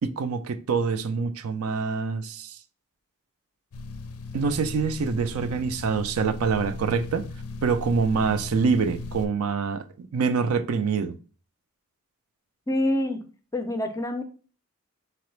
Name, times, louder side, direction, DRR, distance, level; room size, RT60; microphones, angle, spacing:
voice 1, 0.0-2.6 4.3-7.3 7.6-11.1, right 5 dB, 65° right, 0.4 m, -25 dB
sound 1, 3.7-9.3, left 3 dB, 80° left, 0.5 m, -37 dB
voice 2, 12.7-13.2 13.5-14.2, left 1 dB, 15° left, 0.4 m, -26 dB
3.9 x 2.9 x 3.2 m
head